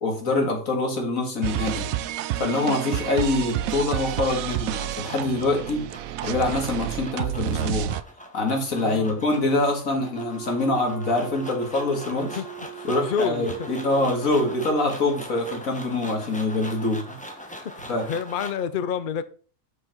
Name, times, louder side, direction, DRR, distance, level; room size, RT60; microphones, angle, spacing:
voice 1, 0.0-1.9 2.4-5.9 6.2-7.9 8.3-12.4 12.8-17.2 17.9-18.1, left 2 dB, 80° left, 2.5 m, -25 dB
sound 1, 1.4-8.0, right 13 dB, 85° right, 1.0 m, -29 dB
sound 2, 4.1-18.7, equal, 5° left, 1.3 m, -42 dB
voice 2, 8.8-9.2 12.4-12.5 12.8-13.7 17.6-19.2, left 7 dB, 50° left, 0.6 m, -29 dB
Wind instrument woodwind instrument, 10.1-14.8, right 11 dB, 55° right, 2.6 m, -41 dB
7.7 x 6.3 x 4.5 m
omnidirectional pair, 1.4 m